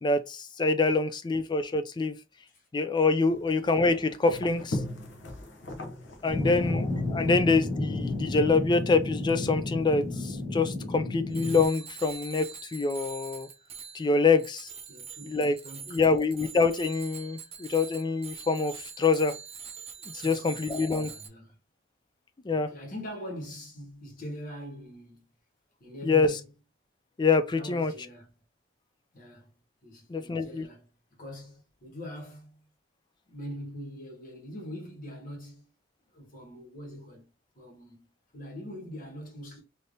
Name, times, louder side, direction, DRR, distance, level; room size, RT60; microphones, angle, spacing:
voice 1, 0.0-2.2 2.7-4.8 6.2-13.5 13.9-14.7 15.3-15.6 15.9-19.3 20.2-21.1 22.4-22.7 26.0-26.3 27.2-27.9 30.1-30.6, left 4 dB, 25° left, 0.4 m, -25 dB
sound 1, 3.3-10.4, left 1 dB, 65° left, 0.7 m, -41 dB
voice 2, 6.2-6.9 14.9-16.1 20.2-20.6 21.0-21.6 22.5-25.3 25.8-26.4 27.5-28.3 29.1-29.5 29.8-32.7 33.3-35.7 36.1-39.6, equal, 45° left, 1.5 m, -43 dB
sound 2, 6.3-11.6, left 2 dB, 10° left, 1.0 m, -32 dB
Bicycle bell, 11.3-21.3, right 6 dB, 30° right, 0.6 m, -44 dB
3.3 x 2.7 x 2.6 m
head